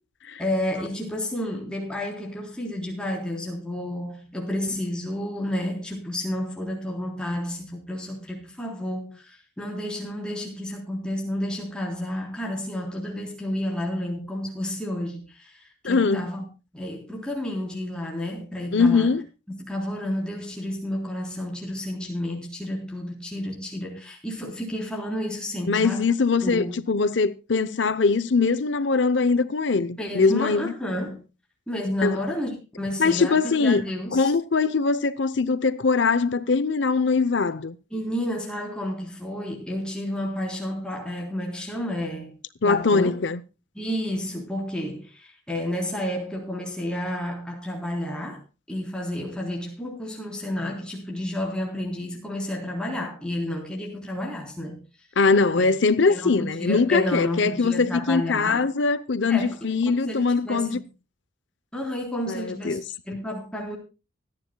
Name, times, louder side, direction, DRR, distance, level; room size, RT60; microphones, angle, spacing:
voice 1, 0.4-16.4 16.7-19.1 19.7-26.1 26.4-26.8 30.0-31.2 31.7-34.3 37.9-42.3 42.6-43.1 43.8-48.4 48.7-54.8 55.6-55.7 56.1-58.7 59.3-59.7 60.0-60.8 61.7-62.8 63.1-63.8, left 1 dB, 5° left, 3.6 m, -31 dB
voice 2, 15.8-16.3 18.7-19.3 25.7-30.7 32.0-32.2 33.0-33.8 34.1-37.8 42.6-43.4 55.2-60.8 62.3-62.8, left 4 dB, 75° left, 0.7 m, -22 dB
25.0 x 9.8 x 2.2 m
head